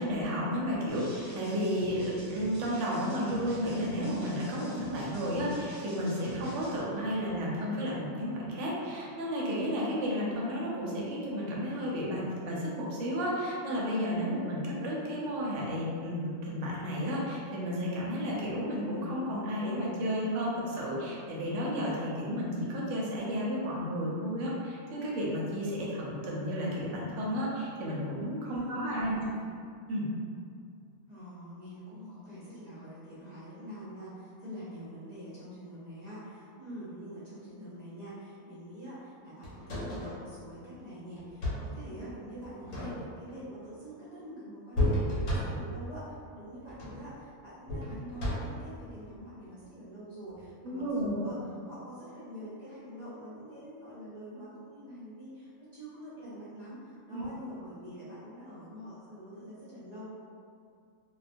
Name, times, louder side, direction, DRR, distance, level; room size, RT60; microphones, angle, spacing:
voice 1, 0.0-29.2 29.9-30.1 50.6-51.3 57.1-57.3, equal, 70° right, -5 dB, 0.9 m, -32 dB
sound 1, 0.9-6.8, equal, 25° right, 0.9 m, -46 dB
voice 2, 28.4-29.4 31.1-60.1, equal, 45° right, -11 dB, 0.5 m, -45 dB
sound 2, 39.4-40.2 41.2-41.8 42.6-43.3 44.8-45.8 46.7-47.1 47.7-48.7 50.4-50.5, equal, 80° left, 1.1 m, -32 dB
2.3 x 2.2 x 2.5 m, 2.3 s
omnidirectional pair, 1.4 m